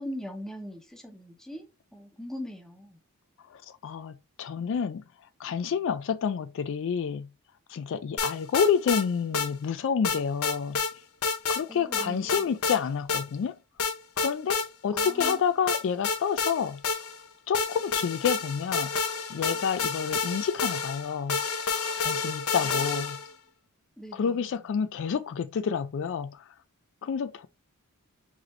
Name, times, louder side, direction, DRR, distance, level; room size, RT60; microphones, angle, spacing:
voice 1, 0.0-1.6 1.9-3.0 11.7-12.5 14.9-15.4 22.6-22.9 24.0-24.5, left 1 dB, ahead, 0.8 m, -40 dB
voice 2, 3.5-5.0 5.4-7.3 7.7-10.8 11.5-13.6 14.2-16.8 17.5-18.9 19.3-21.4 22.0-23.2 24.1-26.5 27.0-27.5, left 6 dB, 55° left, 0.3 m, -29 dB
sound 1, 8.2-9.0 9.3-9.5 10.0-10.9 11.2-11.6 11.9-12.8 13.1-13.2 13.8-14.7 15.0-15.4 15.7-17.2 17.5-23.3, left 5 dB, 75° left, 0.7 m, -29 dB
3.9 x 3.1 x 3.1 m
head